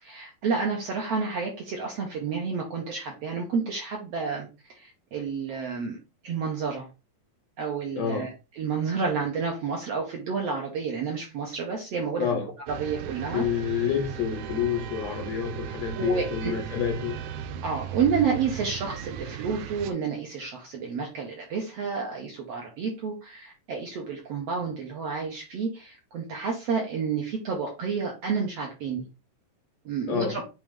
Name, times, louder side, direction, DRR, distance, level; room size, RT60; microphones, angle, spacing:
voice 1, 0.0-6.0 6.2-6.9 7.6-8.3 8.6-12.4 12.7-13.4 15.9-16.5 17.6-29.0 29.8-30.4, right 5 dB, 65° right, 1.6 m, -30 dB
voice 2, 8.0-8.3 12.2-12.5 13.3-17.2 30.1-30.4, left 8 dB, 70° left, 1.7 m, -28 dB
sound 1, 12.7-19.9, right 9 dB, 85° right, 1.7 m, -37 dB
8.6 x 3.0 x 3.6 m
omnidirectional pair, 4.0 m